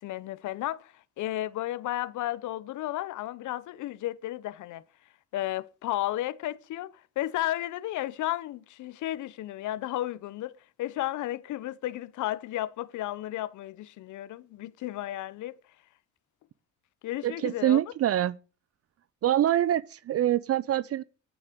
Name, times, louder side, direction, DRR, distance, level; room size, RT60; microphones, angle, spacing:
voice 1, 0.0-4.8 5.3-15.6 17.0-17.8, left 14 dB, 80° left, 0.7 m, -33 dB
voice 2, 17.2-18.4 19.2-21.0, right 12 dB, 50° right, 0.5 m, -25 dB
9.4 x 7.2 x 8.1 m
cardioid pair, 90°, 30 cm